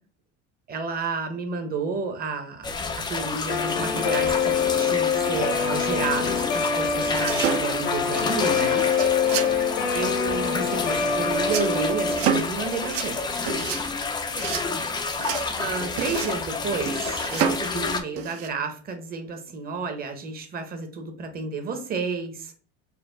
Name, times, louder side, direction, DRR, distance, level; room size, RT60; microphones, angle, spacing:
voice 1, 0.7-2.8 3.1-8.9 9.9-13.5 15.6-22.5, right 4 dB, 30° right, 6 dB, 0.9 m, -31 dB
sound 1, 2.6-18.0, left 4 dB, 15° left, 0.4 m, -29 dB
Guitar, 3.5-12.2, left 6 dB, 85° left, 1.2 m, -25 dB
sound 2, 7.1-7.9 8.8-9.6 11.4-11.7 12.1-12.6 12.8-13.1 13.5-13.8 14.4-14.7 15.2-15.5 16.0-16.4 16.9-17.7 18.2-18.5, right 7 dB, 45° right, 0.5 m, -28 dB
4.3 x 2.2 x 3.8 m, 0.41 s
supercardioid pair, 125°, 33 cm